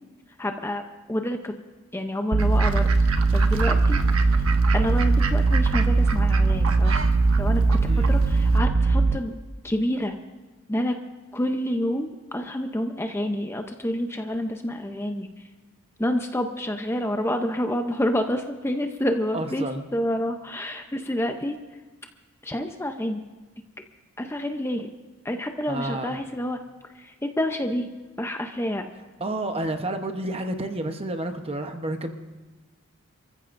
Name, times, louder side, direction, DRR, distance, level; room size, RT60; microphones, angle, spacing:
voice 1, 0.4-1.6 1.9-4.0 4.7-7.1 7.4-7.8 8.1-9.3 9.6-10.2 10.7-11.0 11.3-15.3 16.0-21.6 22.4-23.2 24.2-24.9 25.2-26.6 26.9-27.9 28.2-28.9, left 1 dB, 10° left, 5 dB, 0.6 m, -28 dB
sound 1, 2.3-9.2, right 3 dB, 45° right, 0.5 m, -20 dB
Fowl / Bird, 2.4-8.6, right 5 dB, 70° right, 1.0 m, -33 dB
voice 2, 19.3-19.8 25.7-26.2 29.2-32.1, right 1 dB, 25° right, 6 dB, 0.9 m, -30 dB
28.0 x 14.5 x 2.6 m, 1.3 s
head